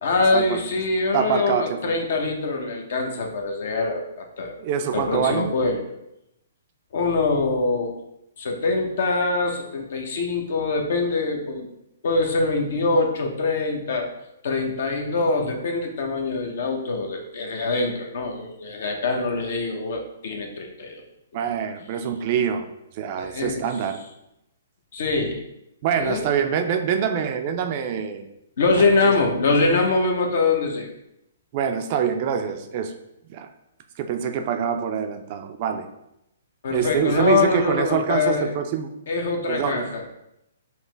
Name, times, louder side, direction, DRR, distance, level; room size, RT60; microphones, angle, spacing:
voice 1, 0.0-4.6 4.9-6.0 6.9-8.0 8.4-11.7 12.0-14.1 14.4-21.0 21.3-21.5 23.2-23.7 24.9-25.4 25.9-26.3 28.6-30.9 36.6-38.5 39.1-40.0, left 3 dB, 65° left, 2 dB, 0.8 m, -24 dB
voice 2, 1.1-2.0 4.6-5.5 21.3-22.7 22.9-24.0 25.8-28.3 29.0-29.1 31.5-32.9 33.3-33.5 34.0-35.9 36.7-38.9 39.5-39.9, right 8 dB, 40° right, 7 dB, 0.4 m, -25 dB
5.5 x 2.1 x 3.3 m, 0.83 s
hypercardioid pair, 140°, 0 cm